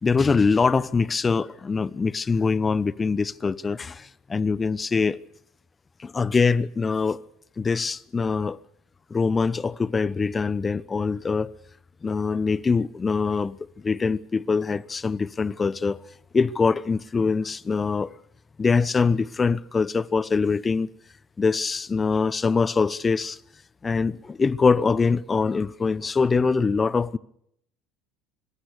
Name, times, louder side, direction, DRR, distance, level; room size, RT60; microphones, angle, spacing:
voice 1, 0.0-5.2 6.0-7.2 7.6-8.6 9.1-11.5 12.0-13.6 13.8-16.0 16.3-18.1 18.6-20.9 21.4-23.4 23.8-27.2, left 4 dB, 25° left, 1.0 m, -23 dB
25.5 x 22.0 x 6.8 m
figure-of-eight pair, 65°, 0 cm